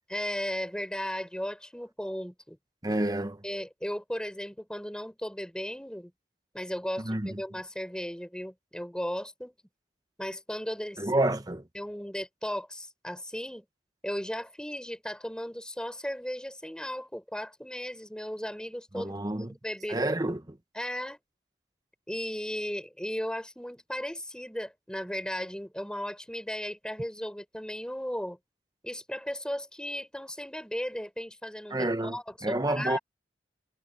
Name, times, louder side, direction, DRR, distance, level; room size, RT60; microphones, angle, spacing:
voice 1, 0.1-2.6 3.4-6.1 6.5-9.5 10.2-11.1 11.7-13.7 14.0-20.2 20.7-21.2 22.1-28.4 28.8-33.0, equal, 5° left, 6.0 m, -36 dB
voice 2, 2.8-3.4 7.0-7.4 11.0-11.6 18.9-19.5 19.9-20.6 31.7-32.2 32.4-33.0, right 1 dB, 20° right, 1.0 m, -29 dB
head